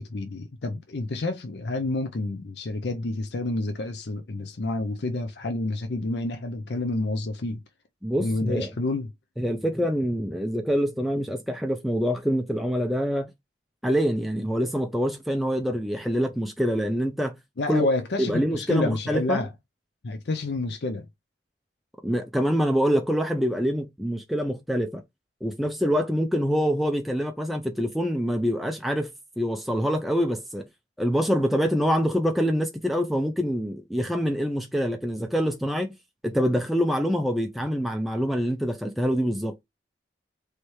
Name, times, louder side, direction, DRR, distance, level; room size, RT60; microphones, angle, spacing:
voice 1, 0.0-7.6 8.2-9.1 17.6-19.5 20.0-21.1, left 2 dB, 70° left, 0.6 m, -29 dB
voice 2, 8.0-8.7 9.4-13.3 13.8-17.4 17.7-17.9 18.2-19.4 22.0-25.0 25.4-30.7 31.0-35.9 36.2-39.5, equal, ahead, 0.4 m, -25 dB
3.2 x 3.2 x 4.5 m
head